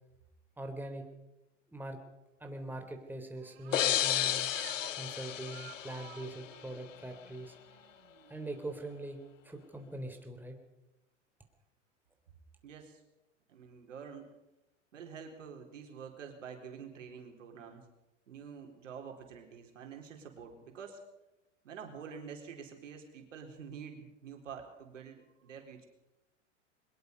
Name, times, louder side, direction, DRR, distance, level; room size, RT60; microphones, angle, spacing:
voice 1, 0.6-1.1 1.7-2.0 2.4-4.5 5.0-7.5 8.3-10.6, right 1 dB, 5° right, 4 dB, 3.6 m, -42 dB
sound 1, 2.6-9.0, right 18 dB, 55° right, 1.5 m, -54 dB
sound 2, 3.7-6.5, left 11 dB, 80° left, 0.9 m, -32 dB
voice 2, 12.6-13.0 13.5-14.4 14.9-17.9 18.3-21.0 21.6-25.9, right 6 dB, 75° right, 3 dB, 4.2 m, -47 dB
23.0 x 21.0 x 5.4 m, 0.97 s
hypercardioid pair, 95°, 37 cm